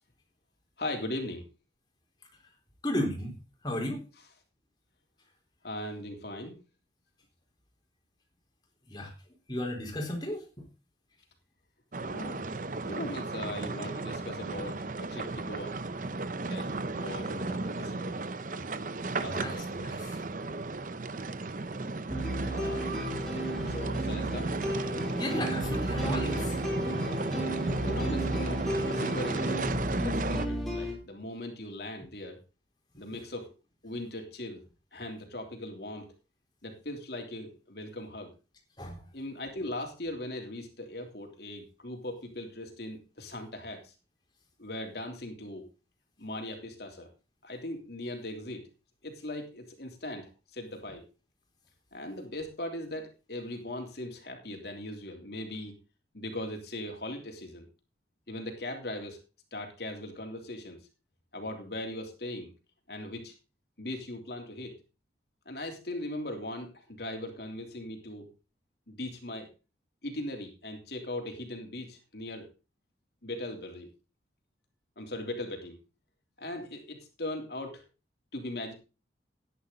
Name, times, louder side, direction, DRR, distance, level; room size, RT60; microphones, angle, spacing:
voice 1, 0.8-1.5 4.2-4.3 5.6-6.6 12.0-12.4 12.9-15.8 16.4-18.2 19.2-19.6 22.5-22.9 23.6-24.6 27.6-29.8 30.0-32.4 33.0-33.5 33.8-34.6 34.9-36.1 36.6-38.3 39.1-43.9 44.6-45.7 46.2-47.1 47.4-48.7 49.0-51.0 51.9-55.7 56.1-57.6 58.3-59.2 59.5-60.9 61.3-62.5 62.9-63.3 63.8-64.7 65.4-68.3 68.9-69.5 70.0-72.5 73.2-73.9 75.0-75.8 76.4-77.8 78.3-78.7, left 1 dB, 60° left, 3 dB, 3.3 m, -39 dB
voice 2, 2.8-3.4 3.6-4.1 8.9-9.1 9.5-10.4 19.3-20.2 25.1-26.6 38.8-39.0, left 1 dB, 25° left, 1 dB, 3.9 m, -34 dB
sound 1, 11.9-30.5, right 3 dB, 45° right, 0.7 m, -34 dB
sound 2, 22.1-30.9, equal, ahead, 4.2 m, -33 dB
14.0 x 10.0 x 3.9 m, 0.31 s
head